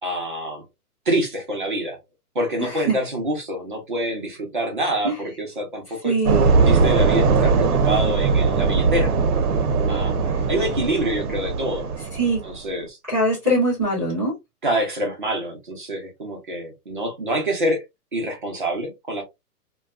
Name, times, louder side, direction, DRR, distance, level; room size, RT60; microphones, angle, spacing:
voice 1, 0.0-0.6 1.1-2.0 2.3-6.1 6.7-9.1 9.9-10.2 10.5-11.9 12.4-13.0 14.6-17.8 18.1-19.2, right 1 dB, 35° right, 0.6 m, -26 dB
voice 2, 2.6-2.9 5.0-5.1 6.0-6.5 12.1-12.4 13.1-14.3, right 1 dB, 10° right, 0.9 m, -22 dB
sound 1, 6.2-12.6, right 4 dB, 70° right, 0.8 m, -20 dB
2.7 x 2.2 x 2.3 m
hypercardioid pair, 175°, 46 cm